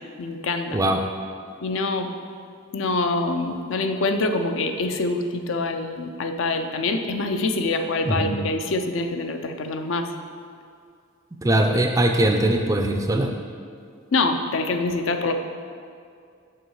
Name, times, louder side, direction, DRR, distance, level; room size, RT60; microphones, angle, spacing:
voice 1, 0.2-0.8 1.6-2.1 2.7-10.1 14.1-15.3, left 3 dB, 65° left, 6 dB, 0.5 m, -25 dB
voice 2, 0.7-1.0 8.0-8.4 11.4-13.3, right 1 dB, 15° right, 3 dB, 0.4 m, -21 dB
6.7 x 6.3 x 4.7 m, 2.3 s
head